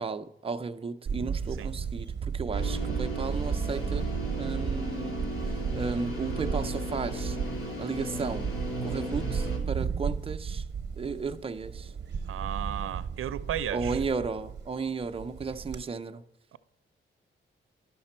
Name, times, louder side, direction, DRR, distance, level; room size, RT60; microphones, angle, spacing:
voice 1, 0.0-4.1 4.4-5.2 5.7-7.4 7.8-8.5 8.8-10.6 11.0-11.9 13.7-16.2, right 4 dB, 25° right, 0.4 m, -34 dB
Camera, 1.1-15.8, right 6 dB, 55° right, 0.8 m, -34 dB
sound 1, 2.5-9.6, equal, 85° left, 2.3 m, -36 dB
voice 2, 12.3-14.0 16.5-16.6, right 10 dB, 85° right, 0.5 m, -34 dB
11.5 x 5.9 x 4.3 m
wide cardioid pair, 165°, 21 cm